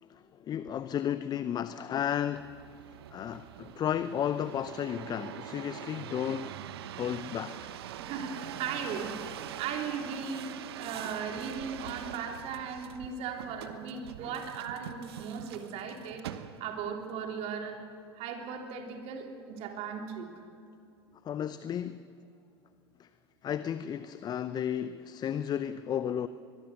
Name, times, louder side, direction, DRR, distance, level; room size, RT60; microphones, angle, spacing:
voice 1, 0.0-2.5 3.1-6.6 7.0-7.8 21.2-22.0 23.0-23.1 23.4-26.3, left 9 dB, 30° left, 13 dB, 0.6 m, -33 dB
sound 1, 2.3-16.9 17.5-18.0, right 11 dB, 65° right, 1.0 m, -44 dB
voice 2, 8.0-9.1 9.6-17.8 18.1-20.3, right 6 dB, 50° right, 3 dB, 3.4 m, -37 dB
23.0 x 22.5 x 6.6 m, 2.4 s
figure-of-eight pair, 80°, 14 cm